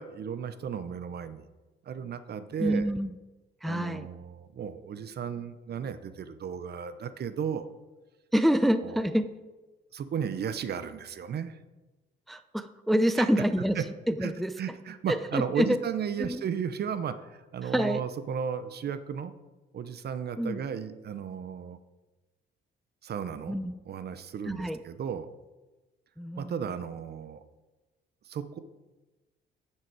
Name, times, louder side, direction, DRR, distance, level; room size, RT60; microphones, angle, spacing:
voice 1, 0.0-1.5 1.9-2.9 3.6-7.7 8.8-9.0 9.9-11.6 13.2-13.3 13.7-13.9 14.2-14.3 14.6-19.3 19.7-21.8 23.0-23.6 23.9-25.3 26.4-27.4 28.3-28.6, right 7 dB, 55° right, 12 dB, 0.7 m, -34 dB
voice 2, 2.6-3.1 3.6-4.1 8.3-9.3 12.3-13.8 14.2-14.5 15.3-15.8 16.2-16.4 17.7-18.0 20.4-20.6 23.5-23.7 24.5-24.8 26.2-26.5, equal, ahead, 11 dB, 0.5 m, -26 dB
9.3 x 7.6 x 4.7 m, 1.2 s
cardioid pair, 90°, 20 cm